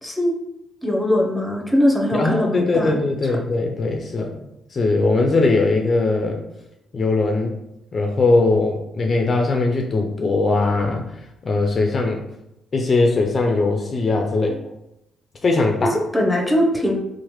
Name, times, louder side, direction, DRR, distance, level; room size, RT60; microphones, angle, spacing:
voice 1, 0.0-0.3 0.8-3.0 3.3-3.4 16.1-17.0, left 1 dB, 5° left, 0 dB, 0.6 m, -20 dB
voice 2, 2.1-6.4 6.9-7.6 7.9-11.1 11.4-12.2 12.7-14.6 15.4-16.0, left 3 dB, 40° left, 2 dB, 0.3 m, -20 dB
3.0 x 2.1 x 2.9 m, 0.86 s
cardioid pair, 90°, 0 cm